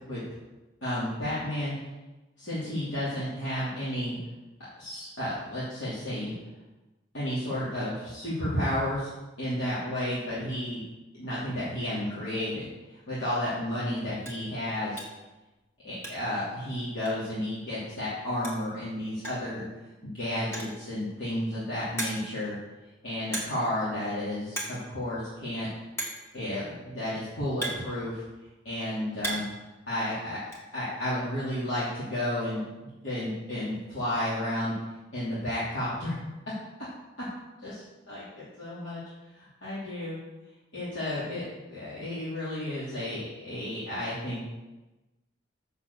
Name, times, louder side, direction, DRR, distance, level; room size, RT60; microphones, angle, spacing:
voice 1, 0.8-1.7 2.4-4.2 4.8-6.3 7.1-9.1 9.4-10.8 11.1-15.0 15.8-19.6 20.0-22.6 23.0-25.7 26.3-28.2 28.6-29.5 29.9-30.4 30.7-34.7 35.1-36.2 37.6-39.0 39.4-40.2 40.7-44.4, left 1 dB, 70° left, -11 dB, 2.9 m, -32 dB
sound 1, 14.3-14.5 15.0-15.3 15.6-16.4 16.7-16.8 17.1-17.2 18.2-18.3 18.4-18.8 19.2-19.5 20.4-20.9 21.4-21.5 22.0-22.4 23.3-23.7 24.0-24.2 24.5-24.8 25.1-25.2 26.0-26.3 27.1-28.4 28.8-29.6 29.9-30.6, right 1 dB, 15° left, 1.8 m, -36 dB
7.0 x 7.0 x 7.0 m, 1.1 s
head